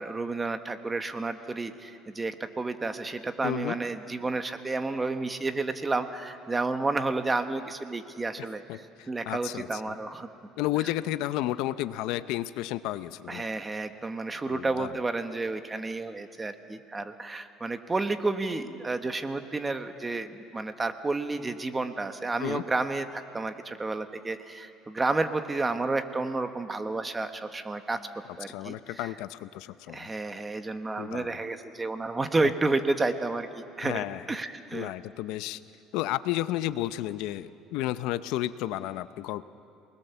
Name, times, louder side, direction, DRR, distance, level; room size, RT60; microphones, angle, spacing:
voice 1, 0.0-10.3 13.3-28.0 28.4-29.1 29.9-34.9, right 3 dB, 15° right, 8 dB, 1.2 m, -31 dB
voice 2, 3.4-3.8 8.4-10.0 10.6-13.4 14.5-15.0 22.4-22.6 28.5-30.1 31.0-31.4 33.8-34.2 34.7-35.6 35.9-39.4, left 15 dB, 75° left, 14 dB, 0.6 m, -32 dB
28.0 x 20.5 x 7.0 m, 2.5 s
cardioid pair, 120°, 0 cm